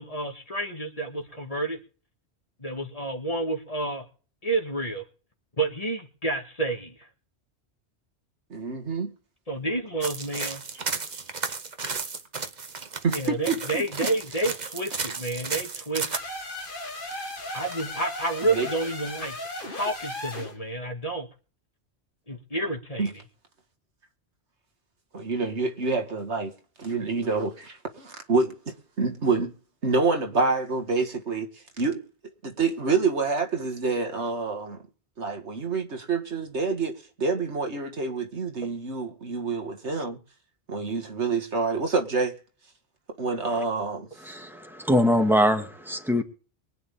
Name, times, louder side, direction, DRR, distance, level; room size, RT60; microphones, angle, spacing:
voice 1, 0.0-1.8 2.6-4.0 4.4-5.0 5.6-7.0 9.5-10.6 13.1-16.1 17.5-19.4 19.7-21.3 22.3-23.2, right 2 dB, 30° left, 2.4 m, -29 dB
voice 2, 8.5-9.1 13.0-14.1 18.4-18.7 23.0-23.1 25.1-26.5 26.8-29.5 29.8-31.5 31.8-32.0 32.4-34.8 35.2-40.2 40.7-42.3 43.2-44.1, right 4 dB, 80° right, 2.2 m, -27 dB
sound 1, 10.0-16.2, right 4 dB, 40° right, 1.1 m, -33 dB
sound 2, 16.1-20.6, left 1 dB, 50° left, 2.2 m, -36 dB
voice 3, 44.2-46.2, equal, ahead, 2.0 m, -23 dB
23.5 x 9.3 x 3.7 m
omnidirectional pair, 1.1 m